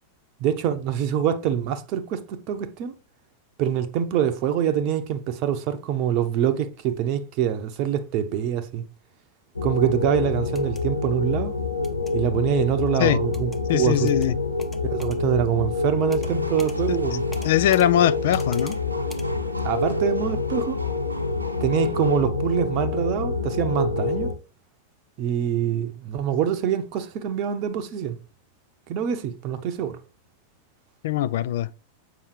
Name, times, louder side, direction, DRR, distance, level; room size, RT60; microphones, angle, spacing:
voice 1, 0.4-2.9 3.6-8.8 9.6-11.6 12.1-14.1 14.8-17.2 19.6-20.8 21.6-24.3 25.2-28.2 28.9-30.0, right 9 dB, 40° right, 0.7 m, -25 dB
sound 1, 9.6-24.3, left 4 dB, 75° left, 0.8 m, -27 dB
sound 2, 10.5-10.8 11.8-12.1 13.3-13.6 14.1-14.3 14.6-15.2 16.1-16.3 16.6-16.8 17.3-17.9 18.3-18.8 19.1-19.3, left 1 dB, 10° left, 0.8 m, -44 dB
voice 2, 13.7-14.3 17.4-18.8 31.0-31.7, left 12 dB, 55° left, 0.3 m, -21 dB
sound 3, 16.2-22.2, right 1 dB, 85° right, 0.8 m, -41 dB
7.1 x 5.3 x 3.2 m
figure-of-eight pair, 90°, 0 cm